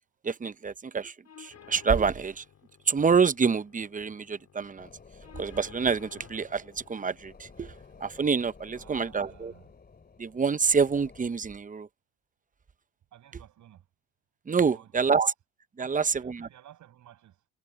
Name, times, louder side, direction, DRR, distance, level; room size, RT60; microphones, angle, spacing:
voice 1, 0.2-2.4 2.9-4.9 5.4-7.7 8.0-9.5 10.2-11.9 14.5-15.3 15.8-16.4, right 5 dB, 25° right, 0.8 m, -27 dB
sound 1, 1.2-9.2, left 8 dB, 60° left, 5.6 m, -55 dB
sound 2, 4.8-11.3, left 5 dB, 30° left, 2.6 m, -53 dB
voice 2, 8.7-9.7 13.1-13.9 14.7-15.2 15.8-17.5, right 11 dB, 75° right, 6.5 m, -54 dB
cardioid pair, 90°, 30 cm